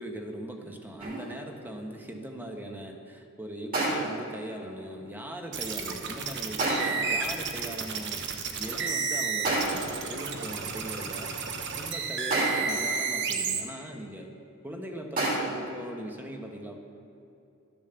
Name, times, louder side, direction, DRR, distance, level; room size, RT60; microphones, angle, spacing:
voice 1, 0.0-8.2 8.6-11.4 11.8-14.3 14.6-16.8, right 1 dB, 10° right, 2 dB, 1.1 m, -40 dB
sound 1, 1.0-1.4 3.7-4.3 6.6-7.1 9.4-10.0 12.3-12.9 15.2-15.7, right 2 dB, 45° right, 3.0 m, -29 dB
sound 2, 5.5-13.6, right 5 dB, 60° right, 1.0 m, -32 dB
12.5 x 7.1 x 6.8 m, 2.6 s
head